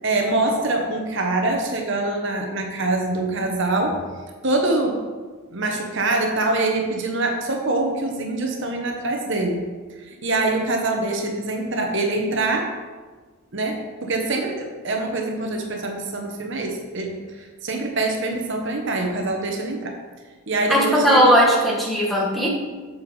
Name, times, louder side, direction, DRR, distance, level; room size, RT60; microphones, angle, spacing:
voice 1, 0.0-4.0 4.4-5.0 5.5-9.6 10.0-12.7 13.5-20.0 20.5-21.4, right 2 dB, 55° right, 2 dB, 1.1 m, -24 dB
voice 2, 20.7-22.5, equal, ahead, -4 dB, 1.5 m, -17 dB
7.7 x 6.7 x 5.3 m, 1.4 s
head